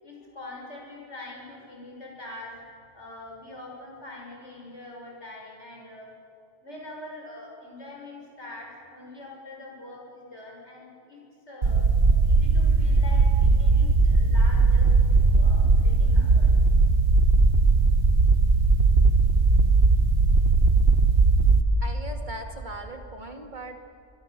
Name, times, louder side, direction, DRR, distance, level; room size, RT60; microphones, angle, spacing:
voice 1, 0.0-2.5 2.9-6.1 6.6-11.2 11.5-11.8 12.2-16.5, left 2 dB, 75° left, -2 dB, 6.8 m, -43 dB
sound 1, 11.6-21.6, right 3 dB, 60° right, 1.4 m, -19 dB
voice 2, 21.8-23.8, right 1 dB, 40° right, 4 dB, 2.4 m, -39 dB
24.5 x 23.5 x 6.8 m, 2.6 s
omnidirectional pair, 1.2 m